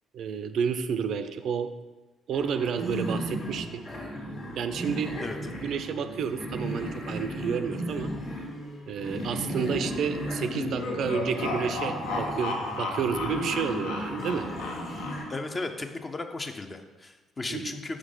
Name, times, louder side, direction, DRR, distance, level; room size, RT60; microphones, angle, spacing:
voice 1, 0.1-1.7 2.3-3.8 4.6-5.1 5.5-8.1 8.9-14.5 17.5-17.7, right 6 dB, 50° right, 10 dB, 0.4 m, -30 dB
sound 1, 2.3-15.2, equal, 45° left, 1.6 m, -35 dB
sound 2, 10.4-15.6, left 3 dB, 65° left, 0.7 m, -34 dB
voice 2, 15.3-18.0, left 2 dB, 25° left, 7 dB, 0.6 m, -35 dB
6.2 x 6.2 x 3.7 m, 1.2 s
figure-of-eight pair, 45°, 0 cm